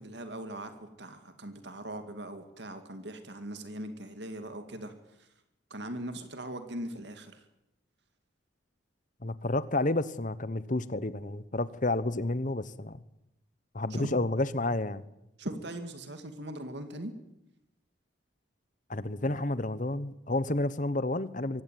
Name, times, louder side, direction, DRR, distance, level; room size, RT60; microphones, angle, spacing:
voice 1, 0.0-4.9 5.7-7.3 13.9-14.1 15.4-17.1, right 1 dB, 60° right, 8 dB, 2.3 m, -40 dB
voice 2, 9.2-13.0 13.7-15.0 18.9-21.6, left 2 dB, 40° left, 16 dB, 1.1 m, -30 dB
24.5 x 17.0 x 9.4 m, 0.88 s
head